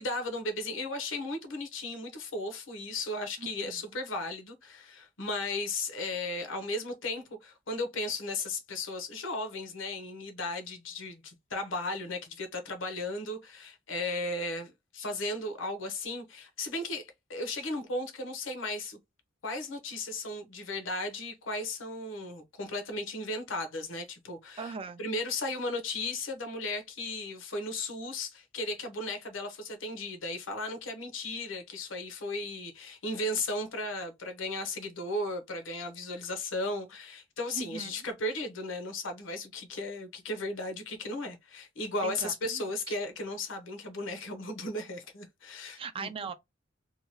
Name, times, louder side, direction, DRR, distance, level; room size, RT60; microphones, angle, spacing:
voice 1, 0.0-19.0 19.4-24.7 25.0-46.1, left 2 dB, 80° left, 0.8 m, -35 dB
voice 2, 3.4-4.0 24.6-25.0 37.5-38.1 42.0-42.9 45.7-46.3, right 5 dB, 30° right, 0.3 m, -40 dB
2.8 x 2.3 x 2.8 m
head